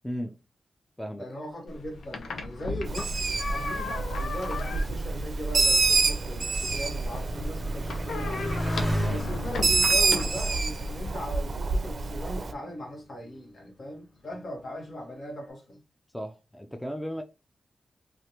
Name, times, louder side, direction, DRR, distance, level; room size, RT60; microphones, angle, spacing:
voice 1, 0.0-0.3 1.0-1.3 9.0-9.2 16.1-17.2, equal, 5° left, 0.4 m, -35 dB
voice 2, 1.2-8.6 9.1-15.8, equal, 60° left, 1.3 m, -39 dB
sound 1, 1.7-11.2, left 3 dB, 85° left, 0.5 m, -37 dB
Bird, 2.9-12.5, right 3 dB, 55° right, 0.4 m, -27 dB
Motorcycle, 3.1-11.9 12.7-13.2, equal, 30° left, 1.6 m, -37 dB
3.3 x 2.4 x 2.8 m
wide cardioid pair, 95°, 0 cm